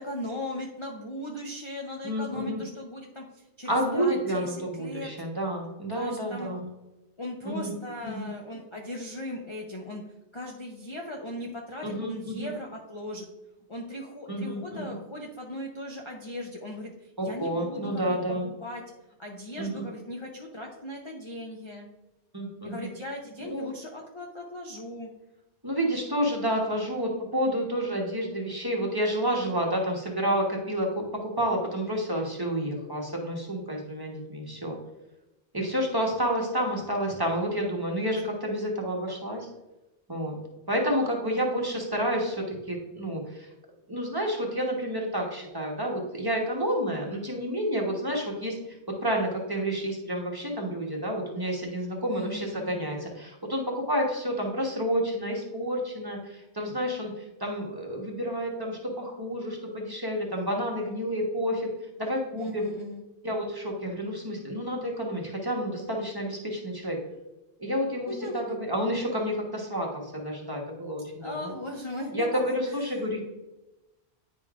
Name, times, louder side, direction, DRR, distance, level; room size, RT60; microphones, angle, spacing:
voice 1, 0.0-5.1 5.9-6.5 7.2-10.0 10.3-13.3 13.7-18.2 18.6-18.8 19.2-21.9 22.6-25.1 52.1-52.7 62.4-63.0 68.1-68.6 71.2-72.3 72.6-73.1, left 1 dB, 35° left, -1 dB, 0.6 m, -38 dB
voice 2, 2.0-2.6 3.7-6.7 7.4-7.8 8.0-8.3 11.8-12.5 14.3-15.0 17.2-18.5 19.6-19.9 22.3-22.9 23.4-23.7 25.6-34.7 35.5-39.5 40.1-40.4 40.7-43.5 43.9-48.6 49.0-61.7 62.0-62.6 63.2-67.0 67.6-71.5 72.1-73.2, equal, 20° right, -1 dB, 1.1 m, -30 dB
9.5 x 5.2 x 2.5 m, 0.99 s
omnidirectional pair, 1.1 m